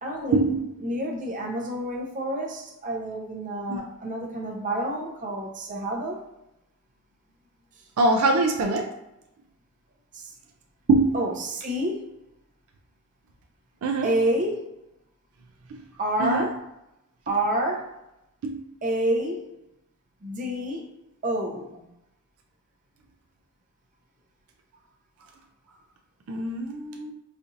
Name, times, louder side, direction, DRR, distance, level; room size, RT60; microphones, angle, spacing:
voice 1, 0.0-0.4 0.8-6.2 10.1-10.3 11.1-12.1 14.0-14.7 16.0-16.5 17.3-17.9 18.8-19.4 20.2-20.9 21.2-21.9, right 1 dB, 35° right, 0 dB, 0.6 m, -28 dB
voice 2, 8.0-8.9 10.9-11.1 13.8-14.1 15.7-15.8 16.2-16.5 18.4-18.6 26.3-27.1, right 2 dB, 70° right, 3 dB, 0.4 m, -23 dB
4.2 x 2.5 x 2.6 m, 0.89 s
head